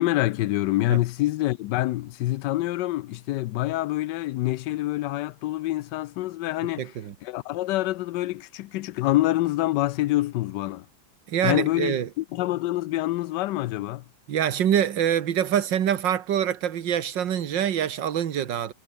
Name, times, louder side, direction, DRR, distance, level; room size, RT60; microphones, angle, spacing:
voice 1, 0.0-6.9 7.2-10.9 11.4-14.0, left 16 dB, 75° left, 1.1 m, -26 dB
voice 2, 6.8-7.1 11.3-12.1 14.3-18.7, right 9 dB, 75° right, 1.9 m, -25 dB
omnidirectional pair, 2.0 m